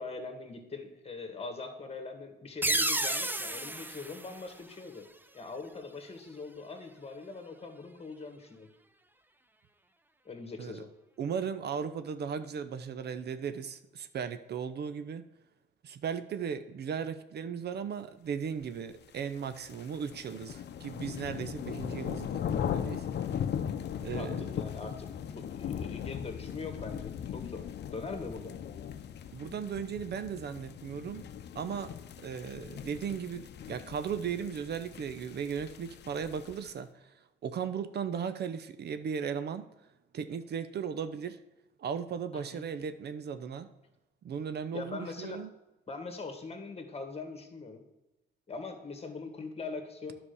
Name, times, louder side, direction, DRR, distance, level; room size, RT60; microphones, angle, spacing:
voice 1, 0.0-5.1 5.3-8.7 10.3-10.9 24.2-28.5 42.3-42.6 44.7-45.4 45.9-47.8 48.5-50.2, left 3 dB, 30° left, 6 dB, 1.9 m, -42 dB
sound 1, 2.6-5.2, right 1 dB, 10° right, 0.7 m, -32 dB
voice 2, 11.2-15.2 15.8-23.1 24.0-24.4 29.3-31.3 31.5-31.9 32.2-37.1 37.4-39.7 40.1-41.4 41.8-43.7 44.2-45.5, right 7 dB, 55° right, 11 dB, 0.7 m, -36 dB
sound 2, 19.2-36.7, left 8 dB, 60° left, 0.7 m, -38 dB
9.9 x 5.0 x 6.9 m, 0.95 s
cardioid pair, 90°, 20 cm